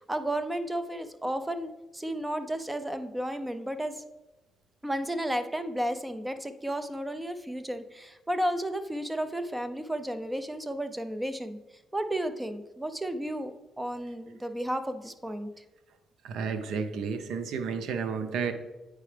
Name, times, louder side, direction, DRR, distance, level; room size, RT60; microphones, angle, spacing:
voice 1, 0.1-4.0 4.8-11.6 11.9-15.6, right 1 dB, 10° right, 10 dB, 0.6 m, -33 dB
voice 2, 16.2-18.5, right 5 dB, 75° right, 8 dB, 0.7 m, -31 dB
8.8 x 4.8 x 3.3 m, 1.1 s
cardioid pair, 90°, 0 cm